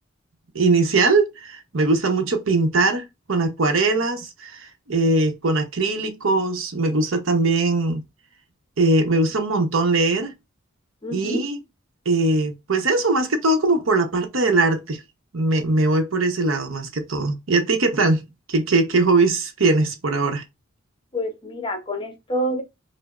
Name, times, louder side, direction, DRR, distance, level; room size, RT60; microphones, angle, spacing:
voice 1, 0.5-4.6 4.9-8.0 8.8-10.3 11.1-11.6 12.1-15.0 15.3-20.4, right 3 dB, 70° right, 0.8 m, -21 dB
voice 2, 11.0-11.4 21.1-22.6, equal, 25° left, 0.7 m, -27 dB
4.9 x 2.0 x 2.4 m
head